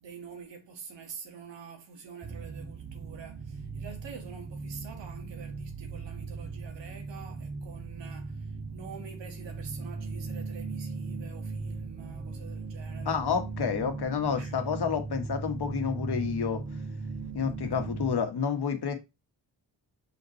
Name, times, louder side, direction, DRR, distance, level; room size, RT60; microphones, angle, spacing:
voice 1, 0.0-13.2 14.4-14.6 17.7-17.9, right 6 dB, 85° right, 1.8 m, -47 dB
sound 1, 2.2-18.2, right 4 dB, 25° right, 1.6 m, -38 dB
voice 2, 13.0-16.6 17.3-18.9, left 6 dB, 65° left, 1.5 m, -29 dB
5.8 x 5.5 x 3.1 m
supercardioid pair, 50°, 43 cm